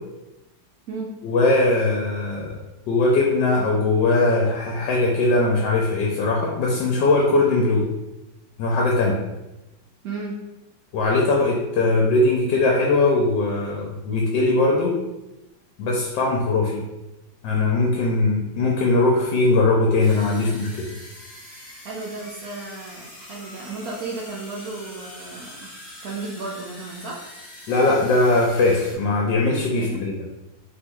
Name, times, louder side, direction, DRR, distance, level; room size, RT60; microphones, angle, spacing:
voice 1, 1.2-2.6 2.9-7.9 8.6-9.2 10.9-14.9 15.8-16.8 17.4-20.9 27.7-30.1, left 2 dB, 75° left, -1 dB, 1.3 m, -20 dB
voice 2, 10.0-10.4 21.8-25.7 26.0-27.2 29.8-30.1, right 3 dB, 65° right, -2 dB, 1.0 m, -34 dB
sound 1, 20.0-28.9, left 1 dB, 20° left, 1.2 m, -43 dB
4.3 x 3.0 x 3.5 m, 1.0 s
omnidirectional pair, 2.0 m